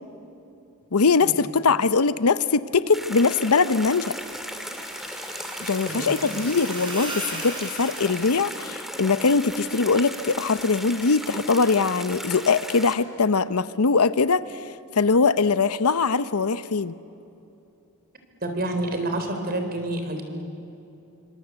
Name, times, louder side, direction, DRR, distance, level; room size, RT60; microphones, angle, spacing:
voice 1, 0.9-4.1 5.6-14.7 14.9-16.9, left 4 dB, 75° left, 15 dB, 0.8 m, -22 dB
sound 1, 2.9-12.9, equal, ahead, 1.9 m, -36 dB
sound 2, 3.9-8.7, right 1 dB, 20° right, 6.4 m, -38 dB
voice 2, 5.9-6.3 18.4-20.2, right 1 dB, 45° right, 6 dB, 3.7 m, -28 dB
27.5 x 25.5 x 8.2 m, 2.8 s
head